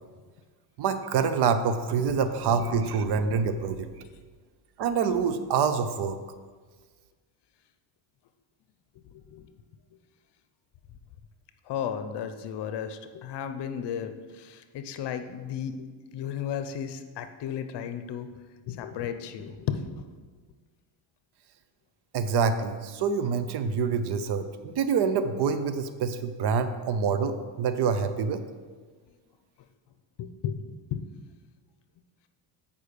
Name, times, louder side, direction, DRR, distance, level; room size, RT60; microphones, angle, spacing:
voice 1, 0.8-3.9 4.8-6.2 22.1-28.4, right 6 dB, 55° right, 10 dB, 0.7 m, -26 dB
voice 2, 9.1-9.5 11.7-15.9 16.1-18.3 18.7-19.9 30.2-31.0, left 8 dB, 55° left, 9 dB, 0.8 m, -34 dB
8.2 x 5.4 x 5.1 m, 1.5 s
cardioid pair, 100°, 49 cm